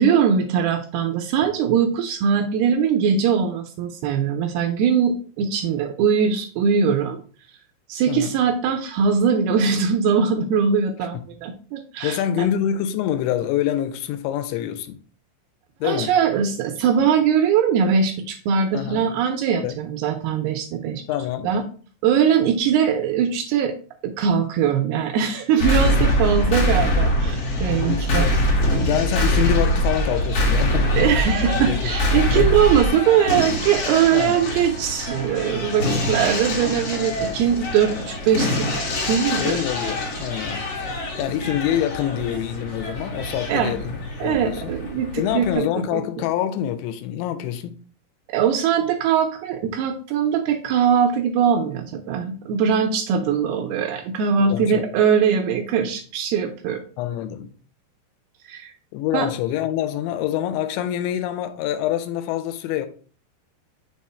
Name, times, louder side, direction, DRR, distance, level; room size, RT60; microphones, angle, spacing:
voice 1, 0.0-7.2 7.9-12.5 15.8-21.0 21.4-21.6 22.0-23.8 24.0-28.3 31.0-38.7 39.0-39.6 43.5-43.7 44.2-46.0 48.3-56.8 58.5-58.7 59.1-59.3, right 7 dB, 85° right, 2.2 m, -21 dB
voice 2, 12.0-15.0 15.8-16.1 18.7-19.0 19.6-19.7 21.1-21.5 25.9-26.2 27.8-28.3 28.9-31.0 31.6-31.9 32.3-32.5 34.1-34.4 37.2-37.4 37.9-38.0 39.4-40.6 41.2-44.7 45.2-47.8 54.4-54.9 57.0-57.5 58.9-62.9, left 11 dB, 85° left, 2.8 m, -26 dB
sound 1, 25.6-45.6, left 1 dB, 65° left, 1.4 m, -24 dB
6.3 x 3.7 x 4.1 m
omnidirectional pair, 5.2 m